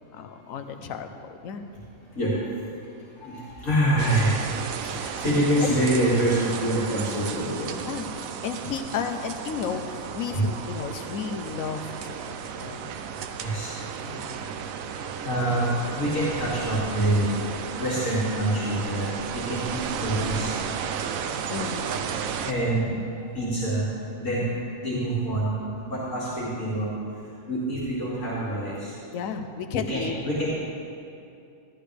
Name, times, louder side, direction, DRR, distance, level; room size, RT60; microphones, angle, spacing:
voice 1, 0.1-1.1 1.4-1.6 5.6-5.7 7.9-8.1 8.4-12.9 14.0-14.5 21.5-22.1 29.1-30.2, left 6 dB, 85° left, 7 dB, 1.1 m, -33 dB
voice 2, 2.1-7.7 13.4-13.7 15.2-17.4 17.7-20.6 22.4-23.9 24.2-24.5 24.8-25.5 25.8-26.9 27.1-29.0 29.7-30.5, right 1 dB, 70° left, -9 dB, 2.6 m, -26 dB
sound 1, 4.0-22.5, right 7 dB, 90° right, 1.1 m, -33 dB
13.5 x 12.5 x 3.3 m, 2.5 s
omnidirectional pair, 1.4 m